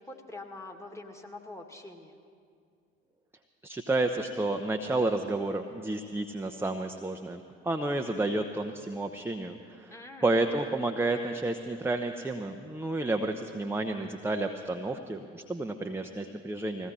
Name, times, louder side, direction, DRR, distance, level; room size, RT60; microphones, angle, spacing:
voice 1, 0.1-2.2 9.9-10.3, left 2 dB, 10° left, 2 dB, 2.0 m, -44 dB
voice 2, 3.6-16.9, right 2 dB, 5° right, 5 dB, 0.8 m, -31 dB
20.5 x 16.0 x 4.2 m, 2.2 s
figure-of-eight pair, 50°, 33 cm